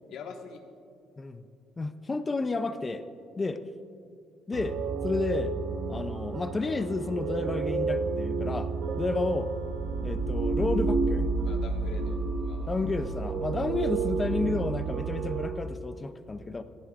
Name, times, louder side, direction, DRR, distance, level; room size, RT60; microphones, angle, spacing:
voice 1, 0.1-0.6 9.0-9.2 11.4-12.8 13.1-13.2, left 5 dB, 70° left, 3 dB, 1.4 m, -44 dB
voice 2, 1.8-3.1 3.4-3.6 4.5-4.8 5.0-5.5 5.9-8.7 9.0-9.5 10.0-11.3 12.7-16.6, left 3 dB, 20° left, 10 dB, 0.4 m, -31 dB
sound 1, 4.5-15.5, right 4 dB, 55° right, 0.9 m, -30 dB
18.5 x 15.5 x 2.4 m, 2.5 s
cardioid pair, 160°, 0 cm